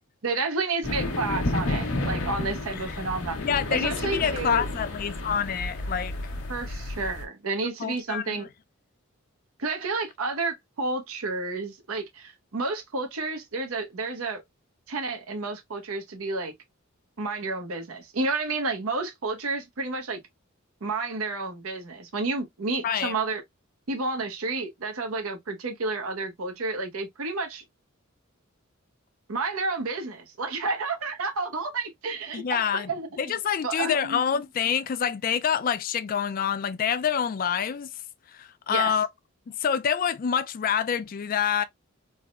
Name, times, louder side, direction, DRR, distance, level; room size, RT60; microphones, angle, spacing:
voice 1, 0.2-3.4 3.7-4.7 6.5-8.5 9.6-14.4 14.9-16.5 17.2-20.2 20.8-23.4 23.9-27.6 29.3-33.1 33.6-34.2 38.7-38.9, right 3 dB, 85° right, 0.8 m, -30 dB
sound 1, 0.8-7.2, left 1 dB, 85° left, 0.9 m, -31 dB
voice 2, 3.4-6.1 7.8-8.5 22.8-23.1 32.3-32.9 33.2-37.9 38.3-39.1 39.5-41.6, left 8 dB, 40° left, 0.3 m, -27 dB
3.4 x 2.1 x 2.3 m
head